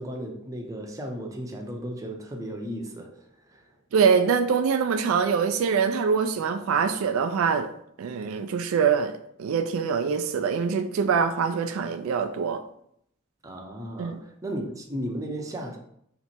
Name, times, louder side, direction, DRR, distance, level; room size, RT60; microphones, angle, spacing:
voice 1, 0.0-3.7 13.4-15.8, equal, 15° right, 1 dB, 0.6 m, -35 dB
voice 2, 3.9-7.7 8.0-12.6 14.0-14.2, right 6 dB, 75° right, 9 dB, 0.3 m, -24 dB
3.2 x 3.0 x 4.3 m, 0.71 s
head